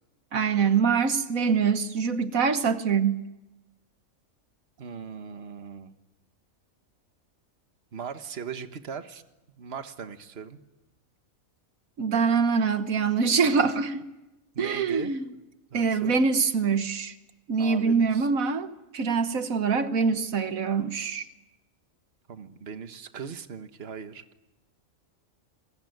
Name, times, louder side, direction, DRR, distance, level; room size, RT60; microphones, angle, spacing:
voice 1, 0.3-3.2 12.0-14.0 14.6-15.2 15.7-17.1 17.5-21.2, right 5 dB, 85° right, 10 dB, 1.6 m, -24 dB
voice 2, 4.8-5.9 7.9-9.2 9.6-10.6 14.5-15.2 15.7-16.2 17.6-18.3 22.3-24.2, right 6 dB, 50° right, 9 dB, 1.5 m, -39 dB
29.0 x 21.5 x 9.3 m, 0.99 s
omnidirectional pair, 1.4 m